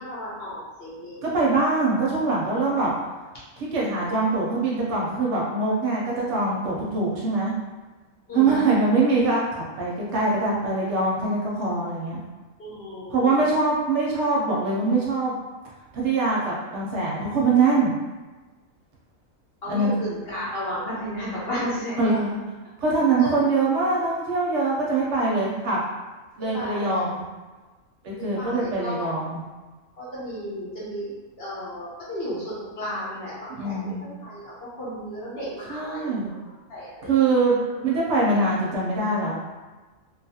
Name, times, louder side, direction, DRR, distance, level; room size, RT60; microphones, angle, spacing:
voice 1, 0.0-1.2 8.3-8.6 12.6-13.3 19.6-22.1 23.2-23.4 26.5-27.1 28.2-29.1 30.0-31.1 31.4-33.9 34.2-34.4 34.8-36.3 36.7-37.1, equal, 55° left, -7 dB, 0.9 m, -33 dB
voice 2, 1.2-2.9 3.6-7.5 8.3-12.2 13.1-15.3 15.9-17.9 19.6-19.9 22.0-22.4 22.8-25.8 26.4-27.2 28.0-29.4 33.5-34.0 35.7-36.3 37.0-39.4, right 3 dB, 65° right, -4 dB, 0.8 m, -23 dB
2.6 x 2.3 x 2.7 m, 1.3 s
omnidirectional pair, 1.4 m